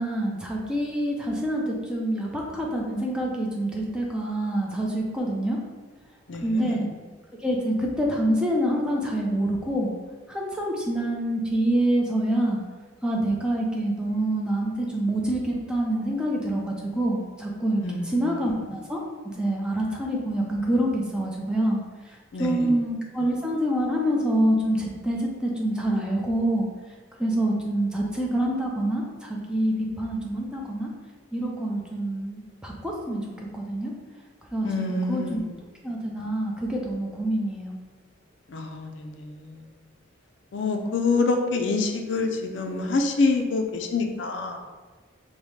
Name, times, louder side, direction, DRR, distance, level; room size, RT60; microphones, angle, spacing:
voice 1, 0.0-5.6 6.4-6.9 7.4-9.9 10.3-12.6 13.0-21.8 22.4-26.7 27.2-30.9 31.3-33.9 34.5-34.7 35.1-35.4 35.8-37.8, right 1 dB, 5° right, -2 dB, 0.5 m, -26 dB
voice 2, 6.3-6.9 17.8-18.5 22.3-22.7 34.6-35.5 38.5-39.6 40.5-44.6, left 3 dB, 65° left, 3 dB, 0.4 m, -27 dB
5.2 x 2.1 x 3.1 m, 1.3 s
head